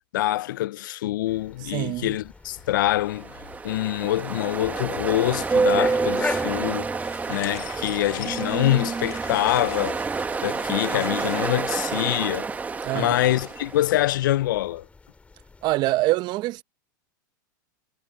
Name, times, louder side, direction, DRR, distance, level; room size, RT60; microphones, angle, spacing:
voice 1, 0.0-3.4 3.6-6.9 7.3-10.0 10.4-12.5 12.9-14.9, left 15 dB, 75° left, 0.4 m, -25 dB
sound 1, 1.3-15.7, left 4 dB, 10° left, 2.3 m, -40 dB
voice 2, 1.7-2.2 12.8-13.2 15.6-16.6, right 18 dB, 40° right, 0.9 m, -25 dB
Ocean, 2.9-14.0, right 4 dB, 15° right, 1.2 m, -28 dB
sound 2, 6.9-13.8, left 24 dB, 50° left, 2.1 m, -44 dB
hypercardioid pair, 120°, 11 cm